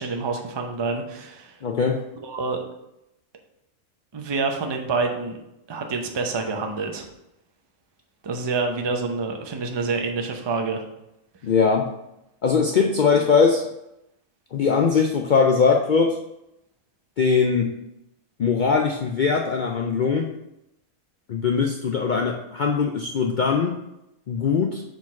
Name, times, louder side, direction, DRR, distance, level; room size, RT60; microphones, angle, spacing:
voice 1, 0.0-1.6 2.2-2.6 4.1-5.4 5.7-7.1 8.2-10.8, right 4 dB, 30° right, 4 dB, 0.5 m, -27 dB
voice 2, 1.6-2.0 11.4-11.9 12.4-13.7 14.5-16.2 17.2-17.7 18.4-20.3 21.3-23.7 24.3-24.8, left 5 dB, 85° left, 2 dB, 0.4 m, -21 dB
4.8 x 4.0 x 5.8 m, 0.86 s
omnidirectional pair, 1.5 m